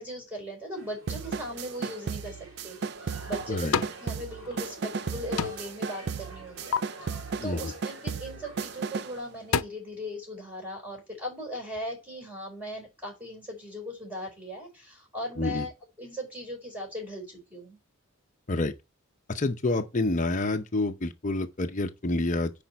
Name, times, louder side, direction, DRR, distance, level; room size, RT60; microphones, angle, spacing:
voice 1, 0.0-2.4 2.6-15.7 16.0-17.8, equal, 10° right, 4.6 m, -39 dB
sound 1, 0.7-9.2, right 1 dB, 70° right, 2.8 m, -47 dB
sound 2, 1.1-9.2, right 5 dB, 50° right, 0.4 m, -35 dB
sound 3, 3.0-4.0 4.4-5.1 5.4-5.8 6.2-6.8 8.6-8.8 9.2-9.6, left 6 dB, 80° left, 0.6 m, -31 dB
voice 2, 3.5-3.8 7.4-7.7 15.4-15.7 18.5-18.7 19.3-22.5, left 2 dB, 35° left, 0.7 m, -28 dB
8.8 x 5.1 x 4.5 m
head